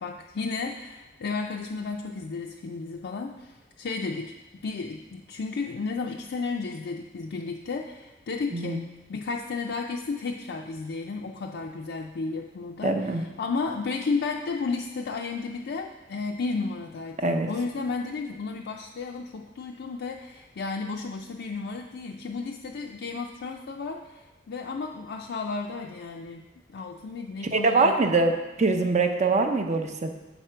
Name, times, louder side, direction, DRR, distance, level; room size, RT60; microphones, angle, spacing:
voice 1, 0.0-4.3 4.6-26.4 26.7-28.0, left 4 dB, 60° left, 1 dB, 0.4 m, -33 dB
voice 2, 12.8-13.2 17.2-17.5 27.5-28.3 28.6-30.1, right 3 dB, 40° right, 5 dB, 0.6 m, -23 dB
7.2 x 5.0 x 4.4 m, 1.1 s
head